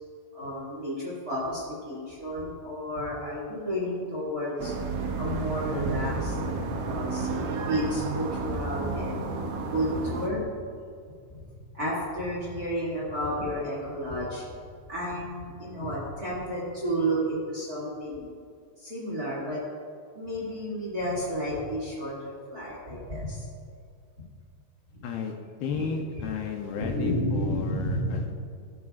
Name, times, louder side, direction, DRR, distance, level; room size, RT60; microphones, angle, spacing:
voice 1, 0.3-4.7 5.2-6.4 6.8-9.3 9.7-10.4 11.3-11.4 11.7-14.4 14.9-18.3 18.8-19.6 20.1-23.5 25.7-26.2 26.8-28.2, equal, 30° right, -6 dB, 1.9 m, -31 dB
sound 1, 4.6-10.3, right 3 dB, 90° right, 1.7 m, -31 dB
Piano, 7.1-8.0, right 4 dB, 70° right, 2.4 m, -39 dB
voice 2, 25.0-25.3 25.6-28.3, left 6 dB, 80° left, 2 dB, 2.5 m, -34 dB
16.5 x 8.5 x 2.4 m, 2.3 s
omnidirectional pair, 4.8 m